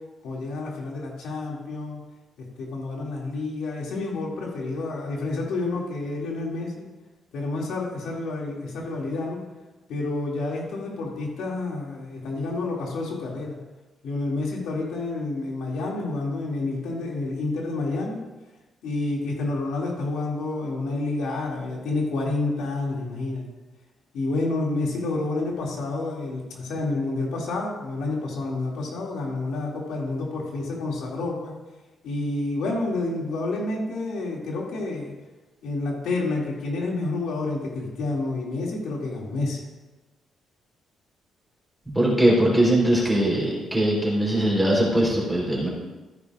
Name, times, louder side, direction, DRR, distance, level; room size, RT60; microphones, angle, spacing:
voice 1, 0.2-2.0 2.4-6.9 7.3-9.4 9.9-13.6 14.0-18.2 18.8-23.4 24.1-31.5 32.0-35.1 35.6-39.6, left 2 dB, 90° left, -2 dB, 2.5 m, -29 dB
voice 2, 41.9-45.7, right 1 dB, 5° right, -5 dB, 3.9 m, -21 dB
15.0 x 9.6 x 2.5 m, 1.1 s
cardioid pair, 145°, 0 cm